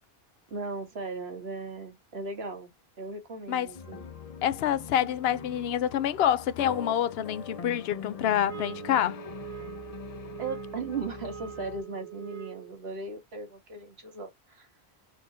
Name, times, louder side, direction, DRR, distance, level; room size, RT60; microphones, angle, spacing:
voice 1, 0.5-2.7 3.0-4.1 10.4-14.7, right 3 dB, 70° right, 1.6 m, -37 dB
sound 1, 3.7-11.8, left 6 dB, 45° left, 0.6 m, -43 dB
voice 2, 4.4-9.2, left 10 dB, 75° left, 0.8 m, -27 dB
sound 2, 8.5-12.8, right 15 dB, 50° right, 0.9 m, -43 dB
4.1 x 3.7 x 2.7 m
omnidirectional pair, 1.1 m